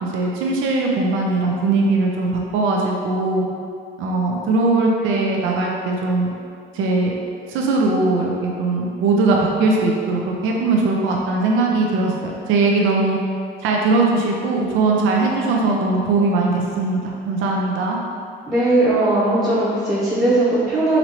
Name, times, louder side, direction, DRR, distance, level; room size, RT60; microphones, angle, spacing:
voice 1, 0.0-3.4 4.0-6.3 6.7-7.1 7.5-13.2 13.6-18.0, right 3 dB, 85° right, -1 dB, 0.5 m, -20 dB
voice 2, 18.5-21.0, right 2 dB, 15° right, -10 dB, 0.7 m, -18 dB
3.9 x 3.0 x 2.8 m, 2.3 s
cardioid pair, 90°, 20 cm